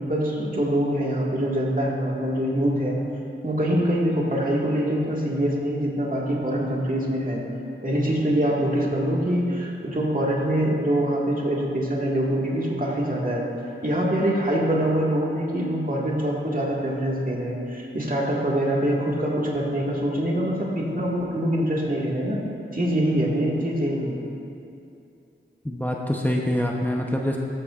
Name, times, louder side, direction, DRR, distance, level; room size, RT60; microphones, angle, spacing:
voice 1, 0.0-3.0 3.4-7.4 7.8-13.4 13.8-22.4 22.7-24.2, right 1 dB, 40° right, -3 dB, 1.9 m, -24 dB
voice 2, 25.6-27.4, equal, 10° left, -1 dB, 0.9 m, -25 dB
13.0 x 12.5 x 2.5 m, 2.6 s
wide cardioid pair, 45°, 21 cm